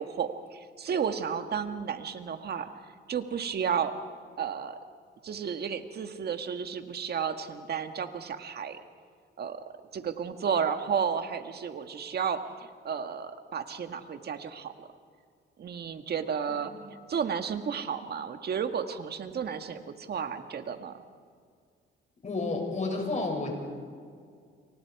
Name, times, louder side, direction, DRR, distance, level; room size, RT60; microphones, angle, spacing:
voice 1, 0.0-2.7 3.1-3.9 4.4-4.8 5.2-8.8 9.4-9.6 9.9-14.9 15.6-21.0, right 7 dB, 55° right, 8 dB, 1.7 m, -32 dB
voice 2, 22.2-23.5, left 3 dB, 35° left, 2 dB, 6.6 m, -31 dB
30.0 x 24.0 x 4.8 m, 2.1 s
cardioid pair, 90°, 20 cm